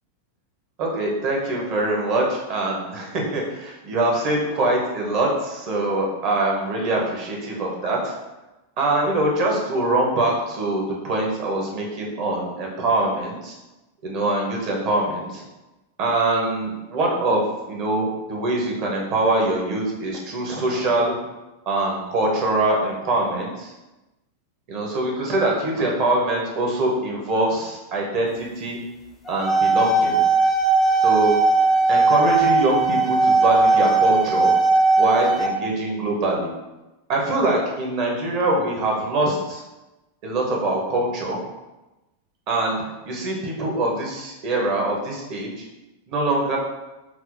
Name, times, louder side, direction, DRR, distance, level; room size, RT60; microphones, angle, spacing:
voice 1, 0.8-8.1 8.8-13.6 14.0-15.4 16.0-21.2 21.7-23.7 24.7-28.8 29.3-30.2 31.0-31.4 31.9-34.5 35.0-36.5 37.1-39.6 40.2-41.4 42.5-45.5 46.1-46.6, right 2 dB, 40° right, -1 dB, 0.9 m, -23 dB
sound 1, 29.3-35.5, right 3 dB, 20° left, 0.4 m, -18 dB
5.8 x 2.0 x 2.6 m, 1.0 s
figure-of-eight pair, 90°, 0 cm